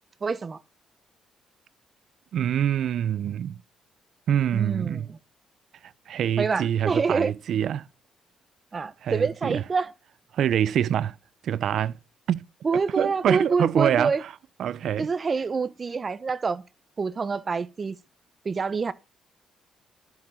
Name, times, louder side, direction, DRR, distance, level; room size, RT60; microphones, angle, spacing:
voice 1, 0.2-0.6 4.5-5.0 6.4-7.3 8.7-9.9 12.6-14.2 15.0-16.6 17.0-18.0 18.4-18.9, right 5 dB, 35° right, 1.0 m, -26 dB
voice 2, 2.3-3.6 4.3-5.1 5.8-7.8 9.0-9.6 10.3-11.2 11.4-12.0 12.3-12.4 13.0-14.3 14.6-15.1, right 10 dB, 70° right, 0.6 m, -25 dB
11.5 x 7.2 x 5.7 m
cardioid pair, 90°, 0 cm